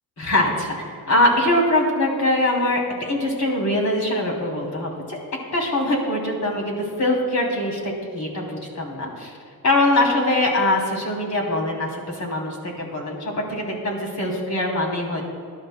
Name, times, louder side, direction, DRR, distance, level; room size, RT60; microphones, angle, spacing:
voice 1, 0.2-0.7 1.1-5.2 5.5-9.3 9.6-15.2, left 1 dB, 45° left, -1 dB, 3.1 m, -22 dB
19.5 x 11.5 x 2.2 m, 2.2 s
cardioid pair, 115°, 38 cm